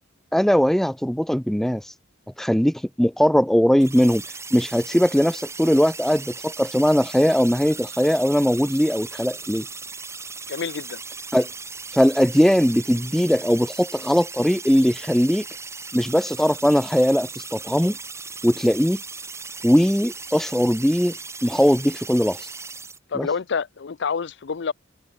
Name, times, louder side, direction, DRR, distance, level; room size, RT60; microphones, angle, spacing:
voice 1, 0.3-1.8 2.4-4.2 4.5-9.7 11.3-11.5 11.9-15.4 15.9-18.0 18.4-19.0 19.6-21.2 21.4-22.5 23.1-23.3, equal, ahead, 0.3 m, -20 dB
sound 1, 3.8-23.0, right 4 dB, 15° right, 2.9 m, -37 dB
voice 2, 10.5-11.0 23.1-24.7, left 5 dB, 60° left, 0.5 m, -27 dB
head